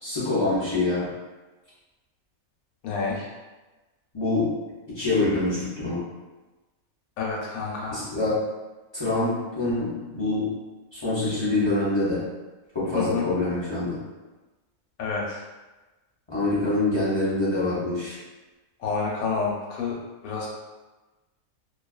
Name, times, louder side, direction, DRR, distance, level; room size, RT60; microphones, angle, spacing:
voice 1, 0.0-1.1 4.1-4.5 4.9-6.0 7.9-8.4 8.9-10.5 10.9-12.2 12.7-14.0 16.3-18.2, left 2 dB, 40° left, -10 dB, 0.4 m, -25 dB
voice 2, 2.8-3.3 7.2-8.0 12.9-13.3 15.0-15.4 18.8-20.0 20.2-20.5, left 4 dB, 85° left, -3 dB, 1.1 m, -29 dB
2.5 x 2.3 x 2.3 m, 1.2 s
omnidirectional pair, 1.5 m